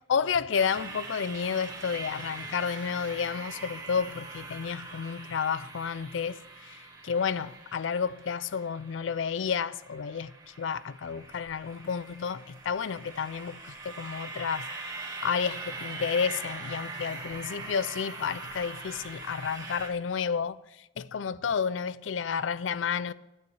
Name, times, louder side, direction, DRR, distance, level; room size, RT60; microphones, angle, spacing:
voice 1, 0.1-6.4 7.0-14.7 15.2-23.1, left 6 dB, 90° left, 0.4 m, -31 dB
sound 1, 0.5-19.9, right 3 dB, 20° right, 1.7 m, -42 dB
9.1 x 8.8 x 7.2 m
head